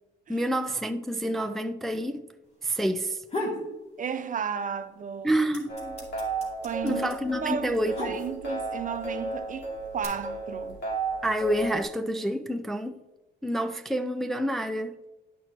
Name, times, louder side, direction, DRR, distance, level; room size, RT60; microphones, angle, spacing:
voice 1, 0.3-2.3 2.6-3.2 5.2-6.0 6.8-8.2 11.2-13.0 13.4-15.1, right 1 dB, ahead, 0.4 m, -28 dB
sound 1, 3.0-3.7 4.1-4.8 5.0-8.7 9.4-10.0, left 2 dB, 35° left, 2.4 m, -35 dB
voice 2, 4.0-5.4 6.6-7.1 7.3-10.8, right 7 dB, 40° right, 0.6 m, -33 dB
sound 2, 5.7-11.8, right 3 dB, 60° left, 2.8 m, -34 dB
10.5 x 5.9 x 2.9 m
cardioid pair, 90°, 20 cm